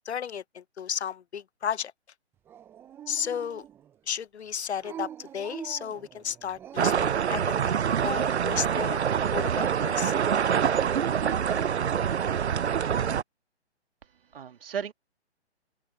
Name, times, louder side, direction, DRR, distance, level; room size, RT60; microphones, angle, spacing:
voice 1, 0.1-1.9 3.1-3.6 4.1-9.0 9.3-10.1, left 8 dB, 70° left, 0.7 m, -34 dB
Dog, 2.5-4.0 4.8-7.1, right 9 dB, 5° right, 0.6 m, -44 dB
sound 1, 6.8-13.2, right 8 dB, 75° right, 0.7 m, -25 dB
voice 2, 14.0-14.9, right 7 dB, 55° right, 2.2 m, -36 dB
open air
figure-of-eight pair, 135°, 34 cm